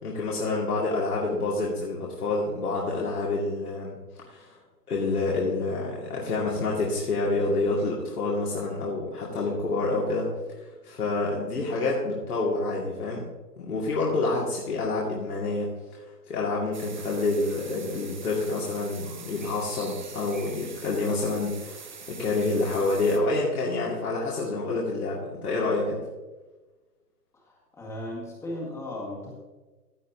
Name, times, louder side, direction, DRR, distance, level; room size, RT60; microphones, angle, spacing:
voice 1, 0.0-4.0 4.3-4.5 4.9-10.3 10.6-13.2 13.6-16.0 16.3-26.0, left 3 dB, 65° left, -4 dB, 2.3 m, -28 dB
sound 1, 16.7-23.2, right 5 dB, 30° right, 0.5 m, -44 dB
voice 2, 27.3-29.3, left 1 dB, 5° left, -3 dB, 1.8 m, -36 dB
15.0 x 8.7 x 2.8 m, 1.2 s
figure-of-eight pair, 140°, 49 cm